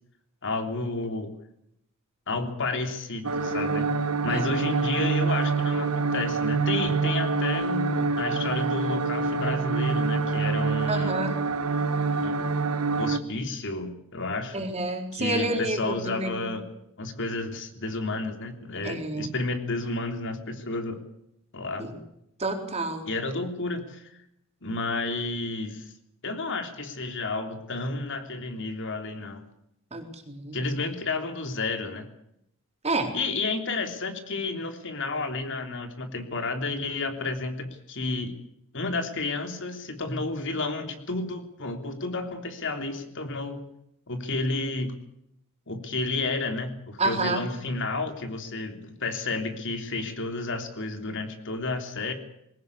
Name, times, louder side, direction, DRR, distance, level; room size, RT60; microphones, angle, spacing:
voice 1, 0.4-1.3 2.3-11.2 12.2-12.4 13.0-14.6 15.1-16.6 17.0-21.0 21.5-21.9 23.1-24.1 24.6-25.9 26.2-29.4 30.5-32.0 33.1-38.3 38.7-43.6 44.1-45.0 45.7-52.1, left 3 dB, 60° left, 6 dB, 3.4 m, -31 dB
sound 1, 3.2-13.2, right 4 dB, 85° right, 1.5 m, -26 dB
voice 2, 10.9-11.4 14.5-16.5 18.8-19.3 21.8-21.9 22.4-23.0 29.9-30.6 32.8-33.1 47.0-47.5, right 2 dB, 30° right, 4 dB, 4.1 m, -29 dB
21.5 x 18.0 x 8.4 m, 0.77 s
head